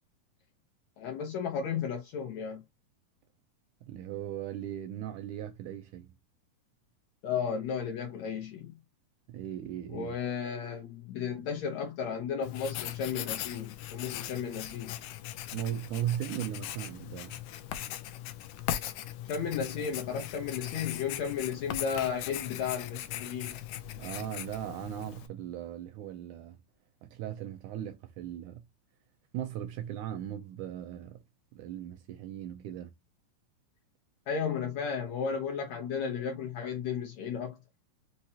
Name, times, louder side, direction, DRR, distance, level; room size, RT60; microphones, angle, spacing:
voice 1, 1.0-2.6 7.2-8.8 9.9-14.9 19.3-23.6 34.3-37.6, left 7 dB, 70° left, 1.7 m, -34 dB
voice 2, 3.8-6.1 9.3-10.2 15.5-17.4 24.0-26.6 27.0-28.6 29.3-31.2 31.5-32.9, right 11 dB, 80° right, 1.8 m, -38 dB
Writing, 12.4-25.3, left 12 dB, 90° left, 1.6 m, -39 dB
5.6 x 3.0 x 2.8 m
omnidirectional pair, 3.9 m